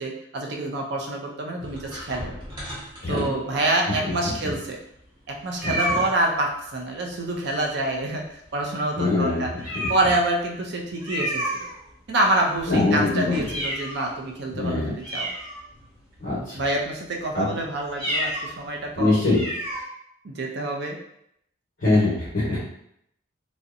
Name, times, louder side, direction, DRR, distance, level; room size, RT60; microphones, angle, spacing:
voice 1, 0.0-2.3 3.1-4.8 5.3-9.5 9.9-11.4 12.1-15.3 16.5-19.2 20.2-21.0, right 2 dB, 55° right, 0 dB, 0.4 m, -27 dB
sound 1, 1.6-3.7 4.3-4.4 4.6-4.7 5.5-6.2 7.4-8.0 8.3-8.5 8.9-9.0 9.6-10.3 11.0-12.1 12.5-14.1 14.6-14.7 15.0-16.0 16.5-16.9 17.9-18.5 18.8-18.9 19.3-19.8, equal, 20° right, 0.8 m, -31 dB
voice 2, 9.0-9.5 12.7-13.4 14.5-14.9 16.2-16.6 17.3-17.5 19.0-19.4 21.8-22.6, left 2 dB, 45° left, -9 dB, 0.8 m, -22 dB
2.7 x 2.1 x 2.4 m, 0.75 s
head